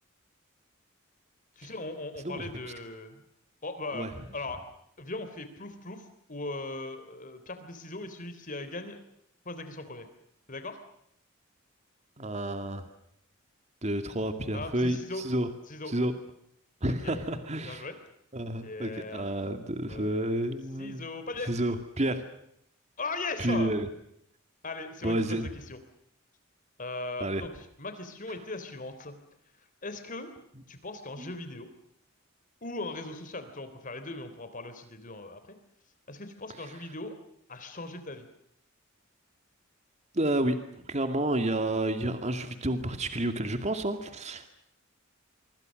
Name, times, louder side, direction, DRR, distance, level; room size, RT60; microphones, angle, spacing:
voice 1, 1.6-3.2 3.6-4.6 5.0-9.0 9.5-10.1 10.5-10.8 14.5-15.2 15.7-15.9 17.0-17.2 17.6-18.0 18.6-19.3 19.9-21.5 23.0-23.7 24.6-25.8 26.8-29.2 29.8-30.3 30.7-31.7 32.6-35.4 36.1-37.2 37.5-38.3, left 2 dB, 40° left, 9 dB, 3.5 m, -39 dB
voice 2, 12.2-12.8 13.8-15.5 15.9-16.1 16.8-17.8 18.3-21.0 21.5-22.2 23.4-23.9 25.0-25.5 27.2-27.4 40.1-44.5, right 1 dB, 35° right, 8 dB, 2.2 m, -30 dB
25.5 x 25.5 x 6.5 m, 0.75 s
head